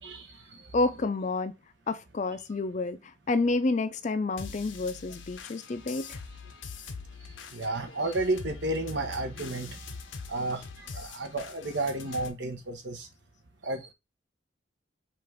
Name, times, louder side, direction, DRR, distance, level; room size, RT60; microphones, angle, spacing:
voice 1, 0.0-0.7 7.5-9.8 10.3-13.1 13.6-13.9, right 2 dB, 65° right, 1.0 m, -32 dB
voice 2, 0.7-1.5 1.9-6.2, left 3 dB, 40° left, 0.4 m, -29 dB
sound 1, 4.4-12.3, left 5 dB, 80° left, 0.7 m, -43 dB
5.6 x 2.5 x 3.3 m
head